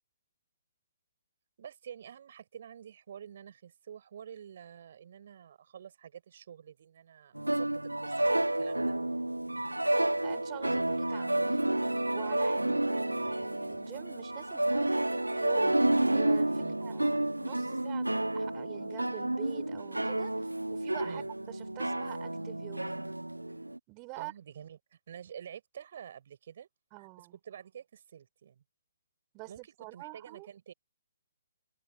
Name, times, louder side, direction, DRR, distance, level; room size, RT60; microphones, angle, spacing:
voice 1, 1.6-8.9 12.6-12.8 16.6-16.8 21.0-21.3 24.1-26.7 27.0-28.6 29.5-29.6 29.9-30.7, right 8 dB, 45° right, 6.3 m, -48 dB
sound 1, 7.3-23.8, right 1 dB, 85° right, 1.1 m, -30 dB
voice 2, 10.2-11.8 12.1-15.8 16.1-23.1 23.9-24.3 26.9-27.4 29.3-30.5, right 33 dB, 25° right, 4.0 m, -46 dB
figure-of-eight pair, 130°, 0 cm